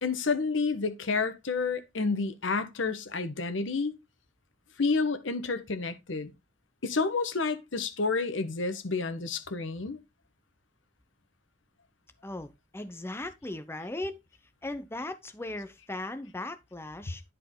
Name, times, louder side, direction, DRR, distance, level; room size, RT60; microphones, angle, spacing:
voice 1, 0.0-3.9 4.8-6.3 6.8-10.0, left 4 dB, 85° left, 1.1 m, -30 dB
voice 2, 12.2-14.2 14.6-17.2, left 2 dB, 15° left, 0.7 m, -38 dB
10.5 x 4.6 x 3.7 m
head